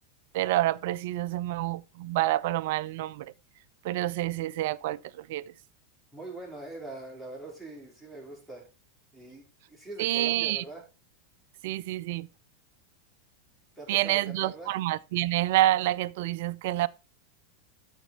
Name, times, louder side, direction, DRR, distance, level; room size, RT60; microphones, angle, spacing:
voice 1, 0.3-3.3 3.8-5.5 10.0-10.6 11.6-12.3 13.9-16.9, right 15 dB, 55° right, 0.4 m, -28 dB
voice 2, 6.1-8.7 9.1-10.9 13.8-14.7, right 2 dB, ahead, 4.5 m, -43 dB
13.0 x 5.2 x 4.2 m
figure-of-eight pair, 90°, 0 cm